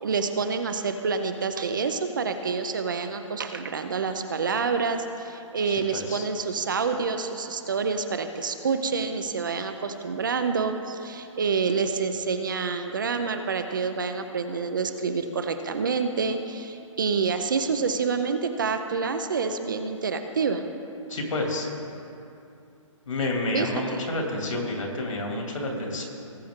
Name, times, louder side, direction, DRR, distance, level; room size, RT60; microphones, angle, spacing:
voice 1, 0.0-20.6 23.5-23.7, right 5 dB, 40° right, 7 dB, 0.6 m, -27 dB
voice 2, 5.7-6.3 21.1-21.7 23.1-26.1, left 2 dB, 70° left, 0 dB, 2.6 m, -29 dB
19.0 x 7.5 x 3.7 m, 2.7 s
hypercardioid pair, 175°, 17 cm